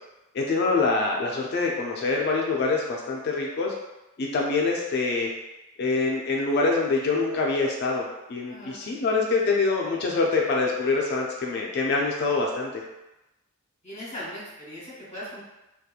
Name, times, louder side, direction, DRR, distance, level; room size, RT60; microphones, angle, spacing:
voice 1, 0.3-3.7 4.2-5.3 5.8-12.8, left 3 dB, 50° left, -1 dB, 0.3 m, -25 dB
voice 2, 8.5-8.8 13.8-15.4, equal, 30° left, -9 dB, 1.0 m, -39 dB
2.8 x 2.2 x 2.3 m, 0.99 s
head